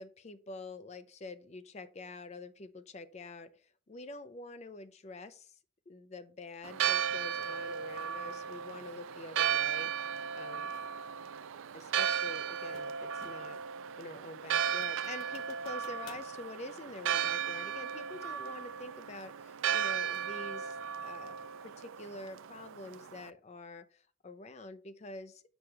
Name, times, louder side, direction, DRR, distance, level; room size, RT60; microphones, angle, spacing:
voice 1, 0.0-5.6 5.9-10.7 11.7-13.6 14.0-20.8 21.0-25.4, left 2 dB, 35° left, 0.4 m, -47 dB
Church bell, 6.6-23.3, right 8 dB, 70° right, 0.3 m, -35 dB
sound 1, 10.7-10.9 12.3-13.6 14.0-14.1 14.5-16.3, left 5 dB, 80° left, 0.9 m, -56 dB
6.1 x 4.8 x 3.2 m
head